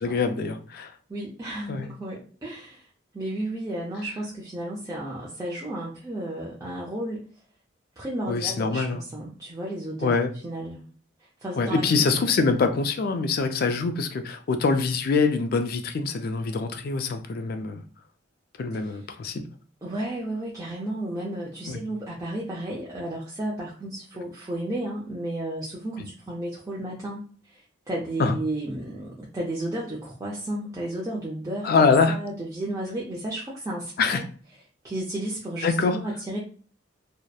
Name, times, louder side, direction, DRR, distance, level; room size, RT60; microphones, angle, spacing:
voice 1, 0.0-0.9 1.7-1.9 8.3-9.0 10.0-10.3 11.5-17.8 18.6-19.5 21.6-21.8 26.0-26.1 28.2-28.4 31.6-32.2 34.0-34.2 35.6-36.0, left 4 dB, 50° left, 8 dB, 0.3 m, -24 dB
voice 2, 1.1-2.8 3.1-7.2 8.0-10.1 10.4-10.9 11.4-12.3 19.8-27.2 27.5-27.6 27.9-34.2 34.8-36.4, right 1 dB, 15° right, -5 dB, 0.4 m, -33 dB
2.7 x 2.0 x 2.2 m, 0.42 s
head